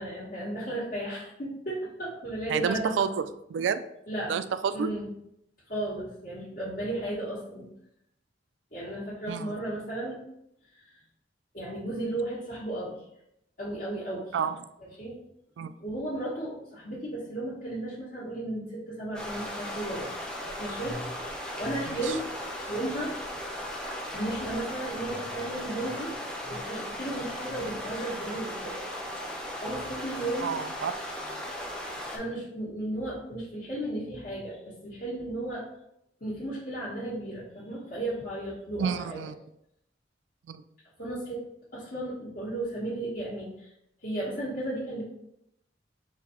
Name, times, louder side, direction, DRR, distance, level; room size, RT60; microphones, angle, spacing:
voice 1, 0.0-3.3 4.1-4.4 4.7-5.1 5.7-7.7 8.7-10.3 10.8-11.0 11.5-13.0 13.6-14.4 14.8-15.2 15.8-20.2 20.6-21.1 21.6-23.2 24.1-26.2 26.5-28.8 29.6-30.5 32.1-35.7 36.2-39.2 41.0-41.4 41.7-43.7 44.0-45.0, right 1 dB, 50° left, -11 dB, 1.3 m, -34 dB
voice 2, 2.5-3.1 3.5-3.8 4.3-4.9 9.3-9.6 14.3-14.5 15.6-15.7 21.9-22.1 30.4-30.9 38.8-39.3 40.5-40.6, right 7 dB, 75° right, 12 dB, 0.3 m, -29 dB
sound 1, 19.1-32.2, equal, 5° left, 0.6 m, -37 dB
4.0 x 2.7 x 4.3 m, 0.79 s
head